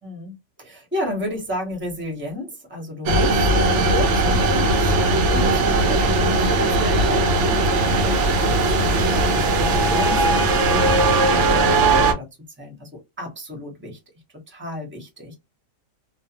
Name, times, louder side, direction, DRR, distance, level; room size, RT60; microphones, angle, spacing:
voice 1, 0.0-12.3 12.6-14.0 14.5-15.3, left 1 dB, 10° right, 2 dB, 0.7 m, -33 dB
sound 1, 3.1-12.1, right 2 dB, 65° right, 0.7 m, -18 dB
2.4 x 2.2 x 2.8 m, 0.20 s
omnidirectional pair, 1.6 m